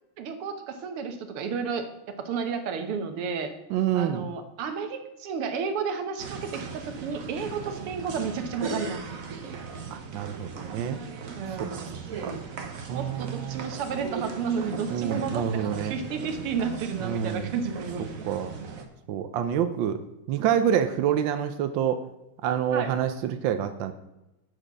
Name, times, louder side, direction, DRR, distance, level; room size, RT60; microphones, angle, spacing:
voice 1, 0.2-3.5 3.9-9.0 11.4-11.9 12.9-18.1 22.7-22.9, right 6 dB, 85° right, 7 dB, 2.0 m, -32 dB
voice 2, 3.7-4.3 9.9-11.0 11.6-11.9 12.2-12.3 12.9-13.8 14.9-15.9 17.0-17.5 18.2-18.5 19.1-20.0 20.3-22.0 22.4-23.9, right 9 dB, 70° right, 8 dB, 1.3 m, -27 dB
sound 1, 6.2-18.8, right 5 dB, 50° right, 1.2 m, -38 dB
8.8 x 6.6 x 6.1 m, 0.94 s
omnidirectional pair, 2.4 m